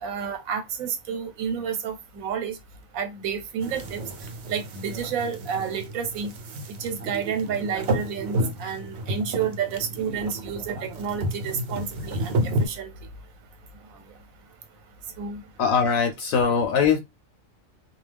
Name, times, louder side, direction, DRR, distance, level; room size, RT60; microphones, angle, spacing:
voice 1, 0.0-2.6 2.9-4.0 4.5-6.3 6.8-12.9 15.2-15.4, right 7 dB, 85° right, 1.1 m, -30 dB
sound 1, 3.6-12.7, right 1 dB, 60° right, 0.8 m, -31 dB
voice 2, 15.6-17.0, left 6 dB, 80° left, 1.0 m, -21 dB
2.3 x 2.2 x 3.3 m
omnidirectional pair, 1.4 m